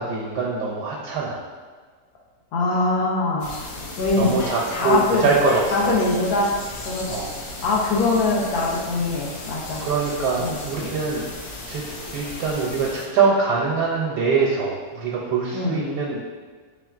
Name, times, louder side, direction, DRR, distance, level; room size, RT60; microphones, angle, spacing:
voice 1, 0.0-1.4 4.1-6.0 7.1-7.3 9.8-11.2 11.7-16.2, right 4 dB, 85° right, -4 dB, 1.2 m, -23 dB
voice 2, 2.5-3.6 4.0-4.3 4.7-5.3 5.7-6.6 6.8-7.1 7.6-9.8 10.4-10.6 15.5-15.8, left 3 dB, 70° left, -3 dB, 1.2 m, -22 dB
sound 1, 3.4-13.1, left 2 dB, 85° left, 1.4 m, -35 dB
4.6 x 3.5 x 2.4 m, 1.5 s
omnidirectional pair, 1.8 m